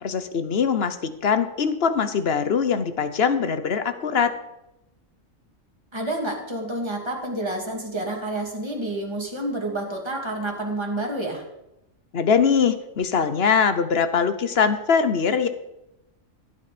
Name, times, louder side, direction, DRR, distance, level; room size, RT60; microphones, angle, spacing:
voice 1, 0.0-4.4 12.1-15.5, left 6 dB, 50° left, 11 dB, 1.1 m, -22 dB
voice 2, 5.9-11.4, right 1 dB, 20° right, 0 dB, 2.5 m, -29 dB
16.0 x 8.7 x 5.1 m, 0.89 s
omnidirectional pair, 1.4 m